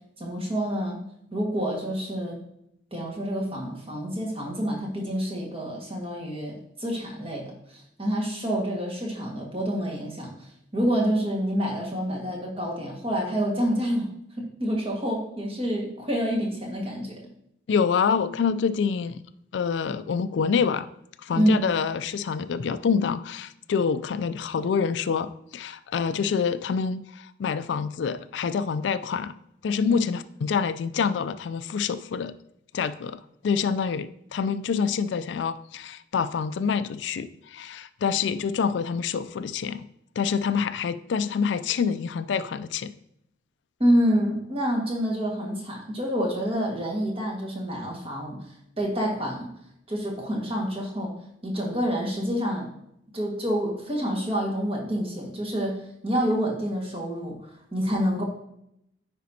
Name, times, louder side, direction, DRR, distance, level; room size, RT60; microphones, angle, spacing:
voice 1, 0.2-1.0 1.3-2.4 2.9-10.5 10.7-14.1 14.4-17.2 21.3-21.7 43.8-48.4 48.8-49.5 49.9-51.1 51.4-52.7 53.1-57.4 57.7-58.2, equal, 30° right, -1 dB, 1.6 m, -27 dB
voice 2, 17.7-19.2 19.5-20.9 21.2-29.4 29.6-32.3 32.7-39.9 40.2-42.9, left 6 dB, 80° left, 14 dB, 0.3 m, -26 dB
9.2 x 5.1 x 2.8 m, 0.77 s
head